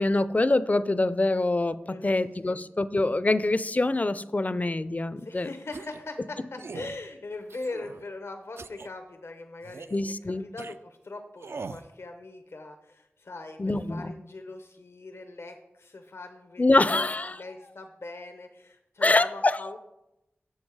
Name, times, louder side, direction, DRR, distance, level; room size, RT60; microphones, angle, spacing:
voice 1, 0.0-1.8 2.0-5.5 9.9-10.4 13.6-14.1 16.6-17.4 19.0-19.6, left 2 dB, 35° left, 15 dB, 0.4 m, -25 dB
voice 2, 1.9-2.6 5.2-19.8, left 2 dB, 75° left, 5 dB, 0.7 m, -41 dB
sound 1, 5.7-6.1 6.6-7.0 7.5-8.0 8.6-8.9 9.6-10.0 10.6-10.8 11.4-11.9, right 4 dB, 70° right, 0.3 m, -41 dB
7.2 x 7.2 x 4.7 m, 0.89 s
wide cardioid pair, 55°, 4 cm